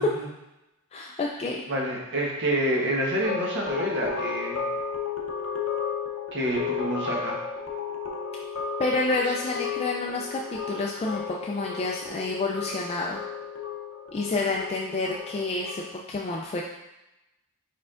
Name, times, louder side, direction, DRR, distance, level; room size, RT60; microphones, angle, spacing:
voice 1, 0.9-1.6 8.8-13.2 14.1-16.6, left 3 dB, 25° left, -2 dB, 0.3 m, -29 dB
voice 2, 1.7-4.6 6.3-7.4 14.4-14.5, right 1 dB, 55° right, -2 dB, 1.0 m, -28 dB
sound 1, 3.2-15.9, left 6 dB, 65° left, 0.7 m, -33 dB
4.5 x 4.4 x 2.4 m, 0.95 s
head